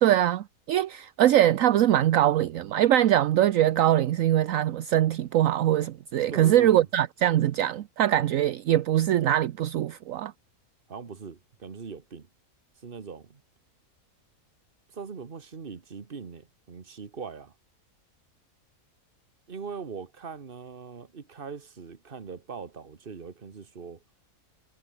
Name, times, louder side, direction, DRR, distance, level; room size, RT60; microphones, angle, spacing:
voice 1, 0.0-10.3, right 12 dB, 70° right, 1.1 m, -22 dB
voice 2, 6.3-6.9 10.9-12.3 12.8-13.4 14.9-17.5 19.5-24.0, right 5 dB, 40° right, 1.6 m, -41 dB
omnidirectional pair, 1.5 m